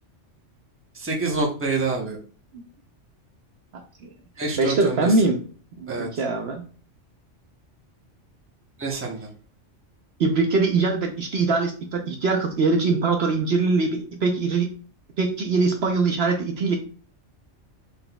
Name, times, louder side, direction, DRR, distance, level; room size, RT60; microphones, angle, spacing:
voice 1, 0.9-2.2 4.4-5.1 5.9-6.1 8.8-9.3, right 3 dB, 10° right, -1 dB, 0.9 m, -27 dB
voice 2, 4.6-5.4 5.8-6.6 10.2-14.7 15.2-16.8, right 3 dB, 60° right, 3 dB, 0.9 m, -22 dB
5.8 x 3.8 x 2.3 m, 0.40 s
omnidirectional pair, 1.3 m